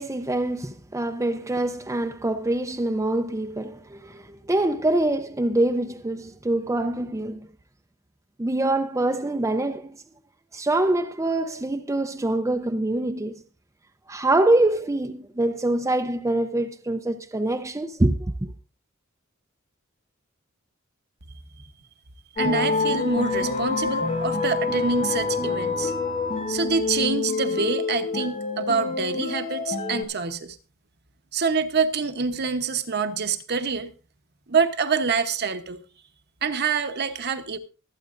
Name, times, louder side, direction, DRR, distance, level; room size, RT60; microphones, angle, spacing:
voice 1, 0.0-7.4 8.4-10.0 10.5-13.3 14.1-18.5, right 1 dB, 15° right, 0.5 m, -25 dB
sound 1, 22.4-30.0, left 4 dB, 40° left, 1.9 m, -27 dB
voice 2, 22.4-25.9 26.5-30.6 31.3-33.9 34.5-35.8 36.4-37.6, right 5 dB, 50° right, 1.0 m, -26 dB
24.0 x 8.7 x 2.6 m
head